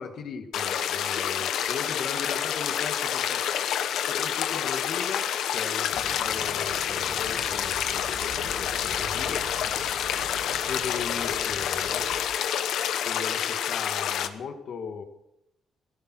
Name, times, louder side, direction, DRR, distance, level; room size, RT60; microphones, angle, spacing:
voice 1, 0.0-3.4 4.0-7.8 8.4-9.5 10.5-12.1 13.1-15.0, left 6 dB, 65° left, 6 dB, 2.1 m, -37 dB
sound 1, 0.5-14.3, left 9 dB, 80° left, 1.1 m, -28 dB
sound 2, 5.9-12.2, right 3 dB, 90° right, 4.5 m, -44 dB
16.5 x 13.5 x 6.3 m, 0.86 s
cardioid pair, 100°, 0 cm